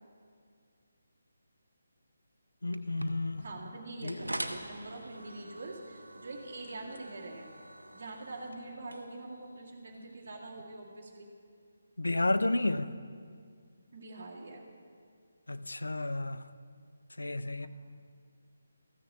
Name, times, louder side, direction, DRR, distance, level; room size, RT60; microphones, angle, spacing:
voice 1, 2.6-3.4 4.0-4.1 12.0-12.9 15.5-16.4 17.2-17.7, left 2 dB, 75° left, 0.5 m, -31 dB
sound 1, 2.7-10.6, right 1 dB, 85° right, 0.9 m, -45 dB
voice 2, 3.4-7.5 7.9-11.3 13.9-14.7, right 2 dB, 45° right, 2.1 m, -44 dB
14.5 x 6.8 x 7.5 m
figure-of-eight pair, 150°, 0 cm